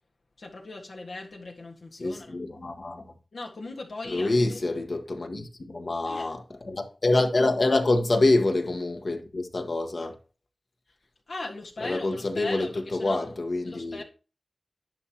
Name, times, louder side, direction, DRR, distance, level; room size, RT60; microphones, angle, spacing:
voice 1, 0.4-2.4 3.3-4.6 6.0-6.3 11.3-13.3 13.6-14.0, left 2 dB, 90° left, 1.7 m, -39 dB
voice 2, 2.0-3.0 4.1-10.1 11.8-14.0, left 2 dB, 65° left, 1.4 m, -26 dB
11.0 x 6.3 x 2.9 m
wide cardioid pair, 65°, 0 cm